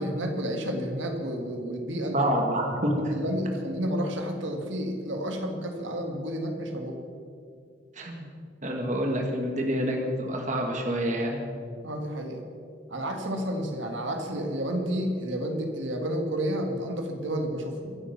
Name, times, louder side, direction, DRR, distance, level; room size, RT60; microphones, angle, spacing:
voice 1, 0.0-2.3 3.1-7.0 11.8-12.4 12.9-18.0, equal, 85° right, 3 dB, 1.9 m, -31 dB
voice 2, 2.1-3.1 7.9-8.3 8.6-11.4, equal, 40° right, 2 dB, 1.9 m, -27 dB
24.5 x 8.5 x 5.9 m, 2.3 s
head